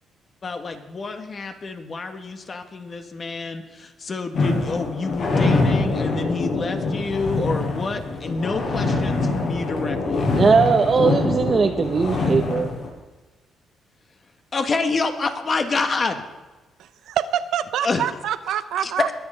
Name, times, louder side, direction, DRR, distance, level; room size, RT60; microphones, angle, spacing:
voice 1, 0.4-10.4 14.5-16.2 17.8-18.1 18.8-19.1, left 4 dB, 40° left, 6 dB, 1.7 m, -27 dB
sound 1, 4.3-12.9, left 3 dB, 55° left, 6.2 m, -24 dB
voice 2, 10.4-12.7, right 5 dB, 40° right, 5 dB, 0.8 m, -19 dB
voice 3, 17.1-19.1, right 10 dB, 80° right, 12 dB, 0.7 m, -25 dB
21.0 x 7.7 x 5.7 m, 1.2 s
cardioid pair, 90°, 0 cm